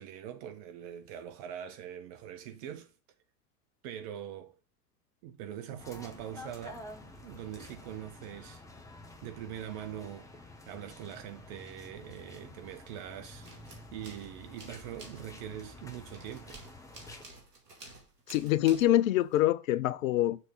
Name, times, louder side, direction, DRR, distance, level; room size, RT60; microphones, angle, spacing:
voice 1, 0.0-2.9 3.8-4.6 5.2-6.9 7.2-8.6 9.2-10.3 10.7-13.5 13.9-16.6, right 10 dB, 25° right, 0.3 m, -43 dB
sound 1, 5.8-17.3, left 2 dB, 5° left, 1.0 m, -50 dB
sound 2, 12.5-13.0 13.3-19.4, right 2 dB, 80° right, 2.1 m, -52 dB
voice 2, 18.3-20.4, left 13 dB, 55° left, 0.6 m, -25 dB
6.8 x 3.2 x 5.0 m
figure-of-eight pair, 90°, 48 cm